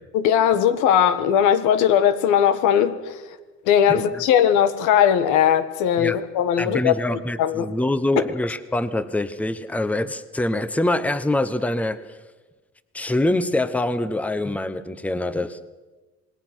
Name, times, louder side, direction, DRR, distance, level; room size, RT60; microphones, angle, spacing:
voice 1, 0.1-3.2 3.6-7.7, left 9 dB, 80° left, 11 dB, 1.6 m, -19 dB
voice 2, 6.6-12.2 12.9-15.6, left 1 dB, 5° left, 13 dB, 1.0 m, -24 dB
27.0 x 19.5 x 6.2 m, 1.2 s
cardioid pair, 110°, 29 cm